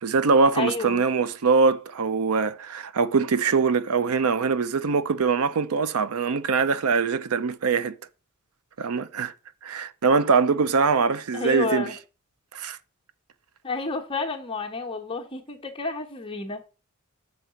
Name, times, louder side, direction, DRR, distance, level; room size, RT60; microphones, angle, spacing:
voice 1, 0.0-8.0 8.8-9.3 9.6-11.9 12.5-12.8, right 4 dB, 75° right, 0.5 m, -23 dB
voice 2, 0.5-1.0 11.3-11.9 13.6-16.6, left 3 dB, 25° left, 1.0 m, -30 dB
6.6 x 4.0 x 5.7 m
head